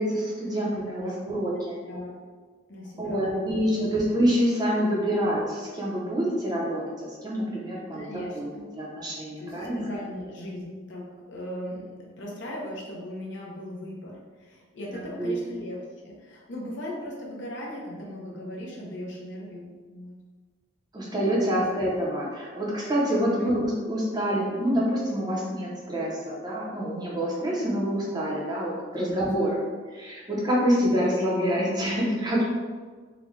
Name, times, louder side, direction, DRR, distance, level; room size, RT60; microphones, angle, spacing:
voice 1, 0.0-1.8 3.0-8.1 8.4-8.5 8.8-9.9 14.9-15.3 20.9-29.6 29.9-32.4, equal, 20° right, -5 dB, 0.6 m, -26 dB
voice 2, 0.8-1.1 1.5-2.1 2.7-3.9 5.0-5.3 7.9-9.0 9.4-20.2 21.5-21.9 23.4-23.5 29.0-29.6, equal, 70° left, -3 dB, 0.7 m, -39 dB
3.7 x 2.2 x 3.1 m, 1.5 s
head